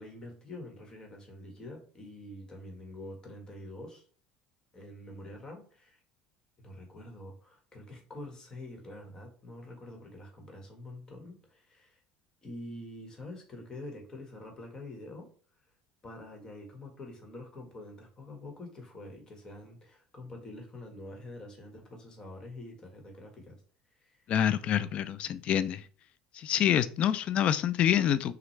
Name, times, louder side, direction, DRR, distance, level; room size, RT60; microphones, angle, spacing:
voice 1, 0.0-4.0 4.7-6.0 6.6-12.0 12.4-15.3 16.0-23.6 24.0-24.2, left 1 dB, 25° left, 1.5 m, -46 dB
voice 2, 24.3-25.8 26.4-28.3, left 10 dB, 50° left, 0.4 m, -27 dB
6.0 x 2.4 x 3.2 m
supercardioid pair, 105°, 3 cm